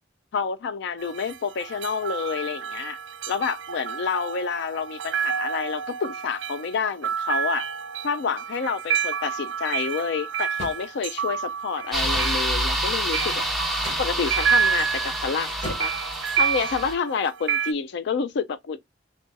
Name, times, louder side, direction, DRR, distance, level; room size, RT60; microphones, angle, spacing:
voice 1, 0.3-3.0 3.3-7.7 8.0-13.4 14.0-15.5 15.8-15.9 16.4-18.8, left 5 dB, 65° left, 0.4 m, -28 dB
sound 1, 1.0-17.7, right 7 dB, 80° right, 0.4 m, -29 dB
sound 2, 10.6-10.9 12.1-12.4 13.8-14.1 15.6-16.0, equal, 40° left, 1.5 m, -36 dB
sound 3, 11.9-16.9, right 1 dB, ahead, 0.7 m, -27 dB
3.6 x 2.5 x 3.8 m
head